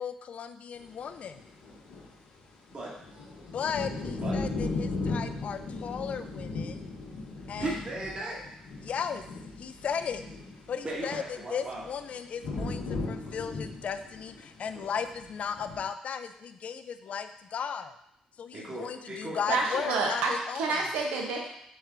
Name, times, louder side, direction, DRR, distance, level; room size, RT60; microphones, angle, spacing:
voice 1, 0.0-1.4 3.5-6.9 7.5-7.7 8.8-9.2 9.6-10.3 10.7-17.9 18.4-20.8, left 7 dB, 60° left, 9 dB, 0.4 m, -36 dB
sound 1, 0.8-0.9 1.2-2.1 2.7-11.2 11.6-15.8, left 3 dB, 80° left, 0.8 m, -37 dB
voice 2, 2.7-3.5 4.2-4.3 7.6-8.4 10.8-11.8 14.7-14.9 18.5-20.0, right 2 dB, 40° right, -5 dB, 1.3 m, -37 dB
voice 3, 19.5-21.5, right 3 dB, 85° right, 0 dB, 0.7 m, -29 dB
4.2 x 3.6 x 3.4 m, 0.76 s
supercardioid pair, 60°, 3 cm